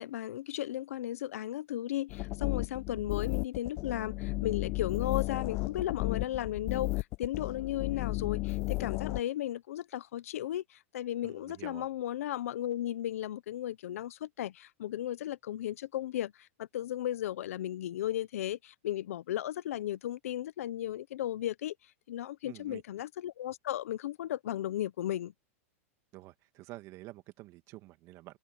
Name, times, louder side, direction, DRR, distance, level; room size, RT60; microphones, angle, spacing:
voice 1, 0.0-21.7 22.1-25.3, left 12 dB, 75° left, 1.0 m, -35 dB
sound 1, 2.1-9.2, left 23 dB, 40° left, 0.4 m, -34 dB
voice 2, 11.2-11.9 22.4-22.8 26.1-28.4, right 18 dB, 40° right, 2.2 m, -49 dB
hypercardioid pair, 130°, 8 cm